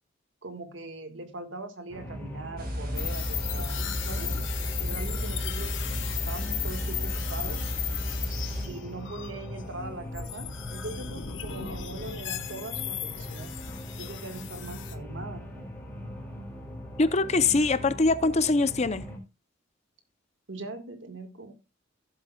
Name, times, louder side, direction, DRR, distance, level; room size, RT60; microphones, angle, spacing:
voice 1, 0.4-4.3 4.8-5.8 6.1-7.6 8.6-13.6 14.0-15.4 20.5-21.5, right 2 dB, 70° right, 1.6 m, -40 dB
sound 1, 1.9-19.2, left 1 dB, 10° left, 2.4 m, -41 dB
sound 2, 2.6-8.7, equal, 45° right, 2.1 m, -33 dB
sound 3, 2.9-14.9, left 9 dB, 70° left, 1.0 m, -36 dB
voice 2, 17.0-19.0, left 3 dB, 35° left, 0.6 m, -23 dB
15.5 x 7.8 x 2.3 m
head